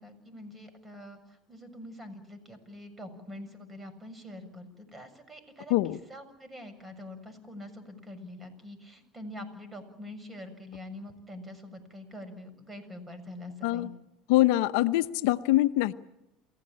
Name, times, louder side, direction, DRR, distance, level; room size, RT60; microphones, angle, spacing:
voice 1, 0.0-13.9, left 1 dB, 20° right, 11 dB, 7.0 m, -45 dB
voice 2, 14.3-15.9, left 17 dB, 75° left, 12 dB, 0.9 m, -24 dB
28.5 x 16.5 x 8.9 m, 0.86 s
supercardioid pair, 90°, 0 cm